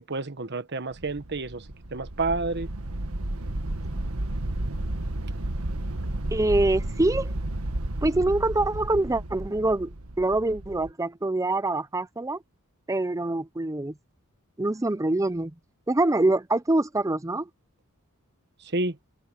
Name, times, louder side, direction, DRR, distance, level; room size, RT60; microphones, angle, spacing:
voice 1, 0.0-1.6 1.9-2.7 18.7-18.9, right 3 dB, 50° right, 1.3 m, -29 dB
sound 1, 0.9-10.9, right 1 dB, 75° right, 1.6 m, -32 dB
voice 2, 6.3-7.3 8.0-12.4 12.9-13.9 14.6-15.5 15.9-17.5, right 2 dB, 15° right, 0.5 m, -25 dB
head